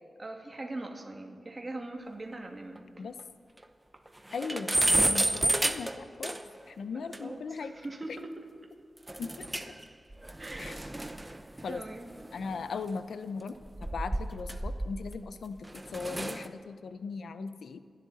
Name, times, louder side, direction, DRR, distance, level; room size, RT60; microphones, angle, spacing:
voice 1, 0.2-3.0 7.2-8.3 10.4-10.8 11.7-12.1, right 2 dB, 30° right, 2 dB, 2.2 m, -41 dB
sound 1, 2.3-2.4 2.8-2.9 3.2-3.3 3.6-3.7 4.1-6.6 7.1-7.2 9.1-9.8 10.1-12.8 13.6-15.2 15.6-16.5, right 1 dB, 15° right, 0.8 m, -31 dB
voice 2, 4.3-6.4 6.7-7.7 9.2-9.5 10.6-10.8 11.6-11.8 12.3-17.8, left 5 dB, 90° left, 11 dB, 0.7 m, -38 dB
27.5 x 11.5 x 4.2 m, 2.2 s
wide cardioid pair, 95°, 0 cm